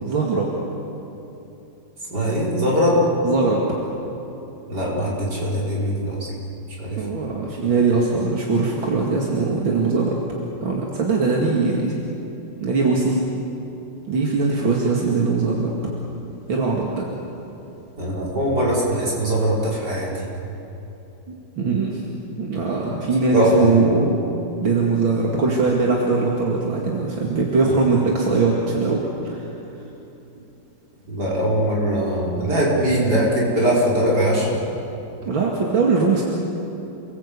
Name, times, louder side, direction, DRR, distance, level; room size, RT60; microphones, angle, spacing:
voice 1, 0.0-0.5 3.2-3.6 6.9-10.2 10.6-12.0 12.6-13.2 14.1-15.7 16.5-17.1 21.6-22.0 22.4-24.2 24.6-29.4 35.3-36.2, right 4 dB, 80° right, -2 dB, 3.1 m, -21 dB
voice 2, 2.1-3.1 4.7-6.3 6.8-7.1 18.0-20.2 23.3-23.8 31.1-34.6, equal, 55° right, -5 dB, 6.0 m, -21 dB
29.0 x 20.5 x 8.5 m, 3.0 s
omnidirectional pair, 2.1 m